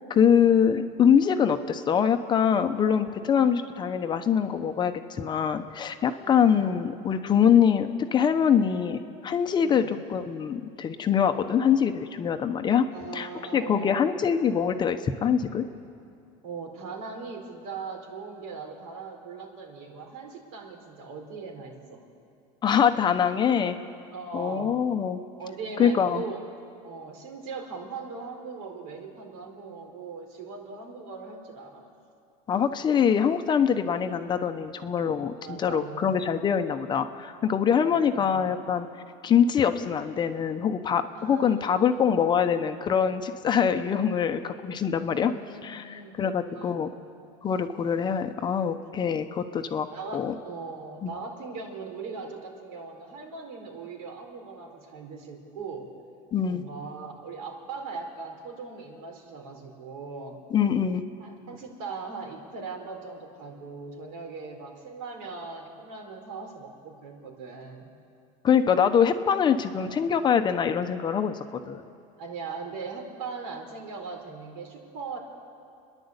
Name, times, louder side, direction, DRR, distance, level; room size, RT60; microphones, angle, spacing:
voice 1, 0.1-12.9 13.1-15.6 22.6-23.8 24.3-25.2 25.8-26.2 32.5-38.9 39.2-45.3 45.6-46.9 47.4-49.9 50.1-50.3 51.0-51.1 56.3-56.6 60.5-61.0 68.4-71.8, left 7 dB, 25° left, 7 dB, 0.9 m, -24 dB
voice 2, 6.2-6.6 9.6-9.9 12.9-14.1 16.4-22.0 24.1-24.8 25.4-26.5 26.8-31.8 35.4-36.1 37.8-38.4 41.1-42.0 45.1-46.8 49.9-55.9 56.5-60.4 61.2-67.9 69.7-69.9 72.2-75.2, right 4 dB, 80° right, 2 dB, 4.5 m, -39 dB
29.5 x 11.0 x 8.2 m, 2.5 s
cardioid pair, 150°, 18 cm